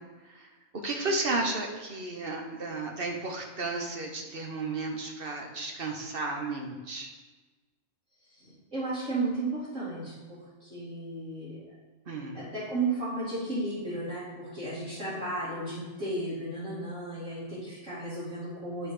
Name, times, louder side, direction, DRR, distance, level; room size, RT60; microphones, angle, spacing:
voice 1, 0.8-7.1 12.1-12.4, right 2 dB, 50° right, 1 dB, 1.1 m, -33 dB
voice 2, 8.4-11.6 12.3-18.9, right 2 dB, 85° right, -14 dB, 3.2 m, -34 dB
11.0 x 4.0 x 4.9 m, 1.3 s
omnidirectional pair, 1.3 m